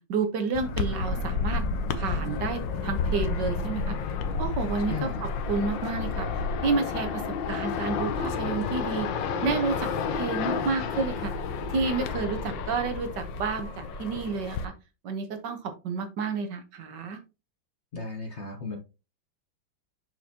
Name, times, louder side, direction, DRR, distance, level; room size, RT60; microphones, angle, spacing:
voice 1, 0.0-1.6 2.0-3.9 4.4-6.3 6.6-7.2 7.5-9.1 9.4-11.3 11.7-14.7 15.0-17.2, right 4 dB, 65° right, 6 dB, 1.5 m, -30 dB
sound 1, 0.5-14.6, left 4 dB, 70° left, 1.4 m, -30 dB
voice 2, 4.8-5.2 17.9-18.8, left 4 dB, 45° left, 3 dB, 1.1 m, -35 dB
6.7 x 6.1 x 2.9 m, 0.29 s
omnidirectional pair, 2.2 m